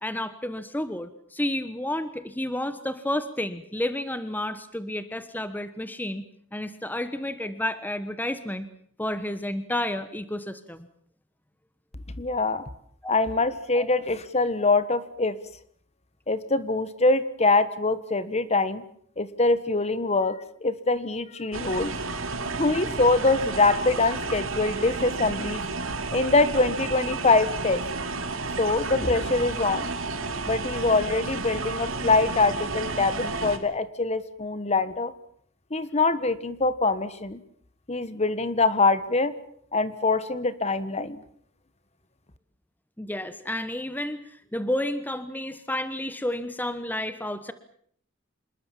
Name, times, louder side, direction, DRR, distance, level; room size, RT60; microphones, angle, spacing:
voice 1, 0.0-6.2 6.5-8.7 9.0-10.9 13.0-13.1 13.7-13.9 43.0-47.5, left 1 dB, 10° left, 12 dB, 1.2 m, -31 dB
voice 2, 12.2-12.7 13.1-15.4 16.3-18.8 19.2-21.9 22.5-25.8 26.1-27.8 28.6-29.9 30.5-35.1 35.7-37.4 37.9-39.3 39.7-41.2, left 3 dB, 35° left, 14 dB, 1.5 m, -24 dB
sound 1, 21.5-33.6, right 3 dB, 85° right, 3.1 m, -31 dB
27.0 x 21.0 x 7.4 m, 0.63 s
head